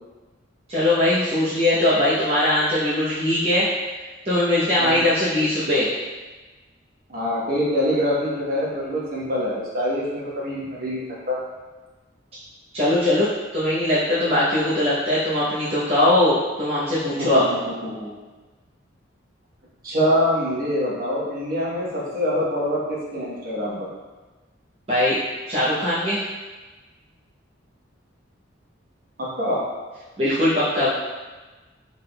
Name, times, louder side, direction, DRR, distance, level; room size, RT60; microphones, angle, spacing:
voice 1, 0.7-3.7 4.2-5.9 12.7-13.3 13.5-17.4 24.9-25.2 25.5-26.2 30.2-30.9, left 1 dB, 30° right, -10 dB, 0.8 m, -20 dB
voice 2, 7.1-11.4 17.2-17.4 17.8-18.1 19.8-23.9 29.2-29.6, equal, 50° right, -6 dB, 1.1 m, -25 dB
5.7 x 3.6 x 2.2 m, 1.2 s
head